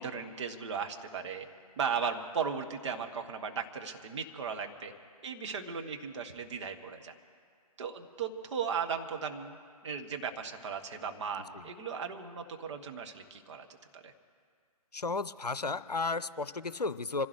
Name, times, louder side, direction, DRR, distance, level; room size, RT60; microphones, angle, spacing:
voice 1, 0.0-1.5 1.8-4.9 5.2-7.1 7.8-13.7 13.9-14.1, right 6 dB, 50° right, 4 dB, 1.5 m, -36 dB
voice 2, 14.9-17.3, left 3 dB, 85° left, 15 dB, 0.6 m, -33 dB
26.0 x 16.0 x 3.3 m, 2.1 s
figure-of-eight pair, 130°, 20 cm